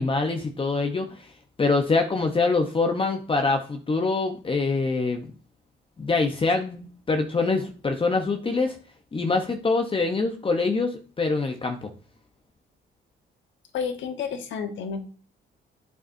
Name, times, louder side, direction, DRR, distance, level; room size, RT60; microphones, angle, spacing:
voice 1, 0.0-1.3 1.6-5.2 6.0-8.8 9.1-11.9, left 3 dB, 25° left, 5 dB, 0.9 m, -24 dB
voice 2, 13.7-15.0, left 6 dB, 75° left, 7 dB, 1.2 m, -30 dB
8.8 x 7.0 x 2.7 m, 0.39 s
cardioid pair, 90°, 20 cm